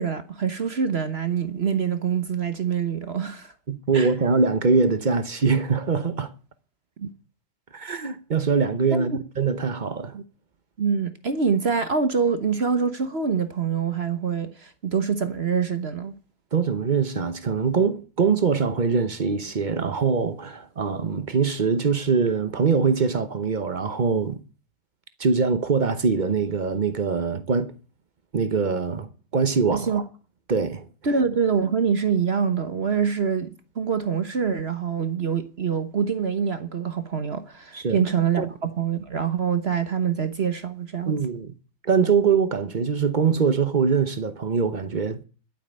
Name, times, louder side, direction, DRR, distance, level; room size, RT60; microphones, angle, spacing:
voice 1, 0.0-3.5 3.9-4.1 7.0-7.1 8.9-9.1 10.1-10.2 10.8-16.1 29.7-30.0 31.0-41.2, right 6 dB, 40° right, 1.0 m, -25 dB
voice 2, 3.7-6.3 7.7-10.2 16.5-24.4 25.2-27.7 28.3-30.0 30.5-30.8 37.7-38.0 38.4-38.5 41.1-41.5 41.8-45.2, right 5 dB, 70° right, 0.4 m, -23 dB
12.5 x 7.8 x 10.0 m
omnidirectional pair, 2.3 m